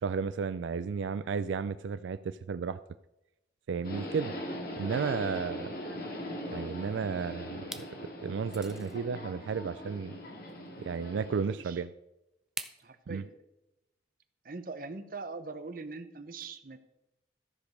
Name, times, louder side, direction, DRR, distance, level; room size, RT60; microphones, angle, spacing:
voice 1, 0.0-2.8 3.7-4.3 4.8-5.7 6.5-7.9 8.2-10.2 10.9-11.9 13.1-13.3, right 5 dB, 90° right, 14 dB, 0.4 m, -33 dB
Subway metro underground, 3.8-11.4, equal, 55° left, 2.0 m, -40 dB
sound 1, 6.8-7.2 7.6-7.9 8.5-9.0 10.5-10.6 12.6-12.8, right 1 dB, 5° right, 0.4 m, -42 dB
voice 2, 11.4-11.8 12.8-13.3 14.4-16.8, right 3 dB, 50° right, 10 dB, 0.8 m, -42 dB
13.5 x 5.1 x 6.4 m, 0.92 s
head